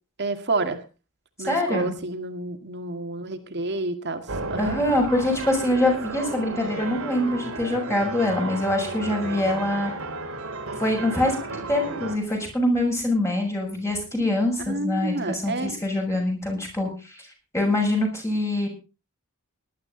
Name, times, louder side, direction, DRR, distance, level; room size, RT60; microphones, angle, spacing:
voice 1, 0.2-0.8 1.4-4.2 4.5-4.8 14.7-15.7, right 2 dB, 50° right, 7 dB, 2.0 m, -29 dB
voice 2, 1.5-2.0 4.6-9.9 10.8-16.9 17.5-18.7, left 1 dB, 15° left, 1 dB, 6.5 m, -24 dB
sound 1, 4.3-12.2, right 3 dB, 65° right, 2.4 m, -33 dB
19.0 x 12.0 x 4.0 m, 0.32 s
head